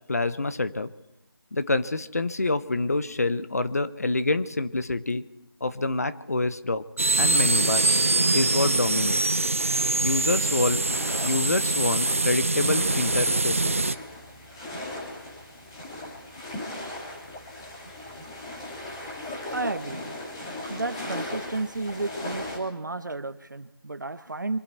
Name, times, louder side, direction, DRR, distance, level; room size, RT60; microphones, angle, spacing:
voice 1, 0.1-0.9 1.5-5.2 5.6-6.8 7.2-7.9 8.3-9.4 10.0-10.8 11.2-14.0, left 2 dB, 40° left, 12 dB, 0.9 m, -27 dB
sound 1, 7.0-14.0, right 2 dB, 35° right, 0.5 m, -24 dB
sound 2, 9.6-22.6, left 1 dB, 15° left, 2.5 m, -38 dB
voice 2, 19.5-20.1 20.7-24.6, right 2 dB, 55° right, 13 dB, 1.1 m, -32 dB
26.0 x 12.0 x 4.5 m, 0.97 s
figure-of-eight pair, 170°, 12 cm